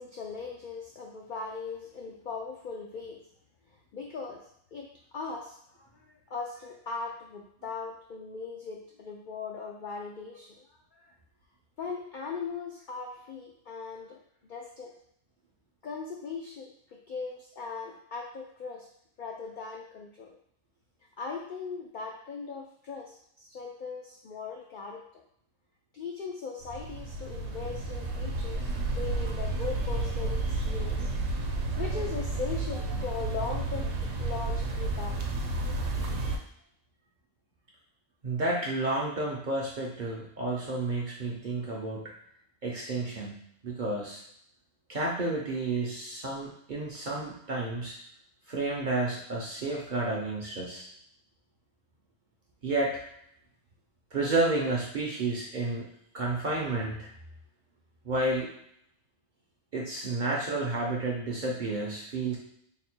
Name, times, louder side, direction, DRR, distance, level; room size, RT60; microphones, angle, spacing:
voice 1, 0.0-3.2 3.9-4.9 5.1-10.5 10.9-11.1 11.8-14.2 14.5-14.9 15.8-18.9 19.2-20.4 21.2-25.0 25.9-31.1 31.8-35.5, left 5 dB, 70° left, -1 dB, 0.4 m, -39 dB
sound 1, 26.6-36.4, right 2 dB, 80° right, 1.0 m, -31 dB
voice 2, 38.2-42.0 42.6-43.4 43.6-44.2 44.9-47.9 48.5-50.9 52.6-53.0 54.1-55.9 56.1-57.1 58.0-58.5 59.7-62.4, right 2 dB, 55° right, -3 dB, 0.6 m, -31 dB
3.3 x 2.1 x 4.3 m, 0.70 s
omnidirectional pair, 1.3 m